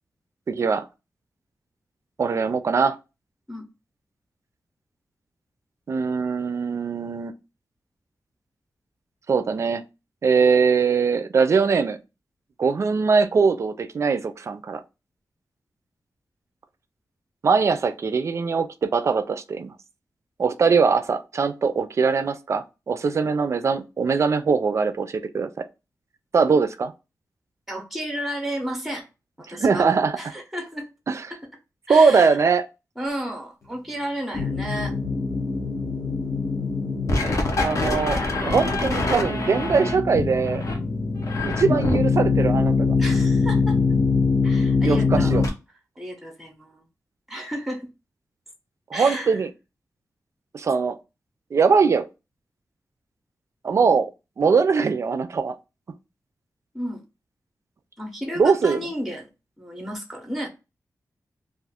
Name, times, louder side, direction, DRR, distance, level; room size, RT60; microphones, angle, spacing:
voice 1, 0.5-0.9 2.2-3.0 5.9-7.3 9.3-9.8 10.2-12.0 12.6-14.8 17.4-19.7 20.4-25.6 26.3-26.9 29.5-30.2 31.1-31.2 31.9-32.6 37.6-38.2 38.5-40.6 41.4-42.9 44.8-45.5 48.9-49.5 50.5-51.0 51.5-52.0 53.6-54.1 54.4-55.6 58.4-58.8, right 5 dB, 50° right, 0.3 m, -21 dB
voice 2, 27.7-29.1 29.4-29.9 30.2-30.9 31.3-31.4 31.9-32.4 33.0-34.9 43.0-43.8 44.4-45.4 46.0-46.8 47.3-47.9 48.9-49.4 56.7-57.0 58.0-59.3 59.6-60.5, equal, 5° right, 0.6 m, -32 dB
sound 1, 34.3-45.5, left 4 dB, 55° left, 0.7 m, -23 dB
2.4 x 2.4 x 3.4 m
wide cardioid pair, 150°, 6 cm